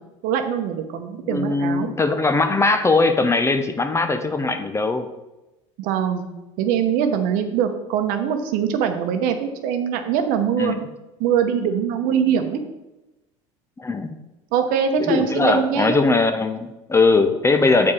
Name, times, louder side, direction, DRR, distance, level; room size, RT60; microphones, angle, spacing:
voice 1, 0.2-1.9 5.8-6.3 6.6-10.8 11.2-12.6 14.5-16.1, right 8 dB, 60° right, 7 dB, 1.0 m, -22 dB
voice 2, 1.2-5.1 10.6-10.9 13.8-14.1 15.0-17.9, left 3 dB, 15° left, 8 dB, 0.6 m, -20 dB
7.3 x 4.8 x 4.8 m, 1.0 s
hypercardioid pair, 80°, 16 cm